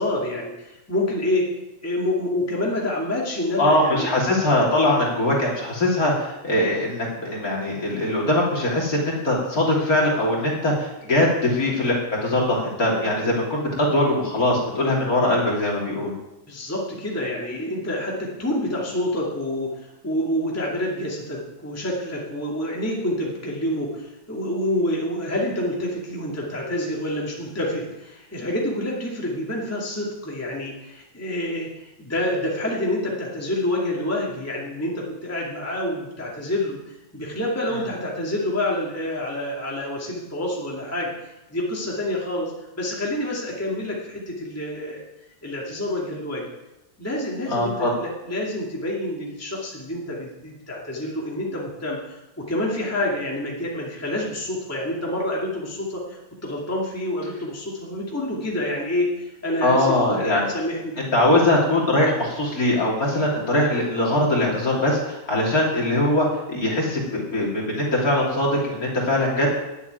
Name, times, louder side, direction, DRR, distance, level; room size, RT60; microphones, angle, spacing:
voice 1, 0.0-1.5 1.8-4.1 16.5-31.7 32.0-36.8 37.1-45.0 45.4-46.5 47.0-61.0, left 1 dB, 5° left, -3 dB, 2.3 m, -27 dB
voice 2, 3.6-16.1 47.5-48.0 59.6-60.5 61.0-69.5, left 1 dB, 45° left, -3 dB, 3.5 m, -21 dB
10.0 x 8.2 x 9.1 m, 0.95 s
omnidirectional pair, 2.1 m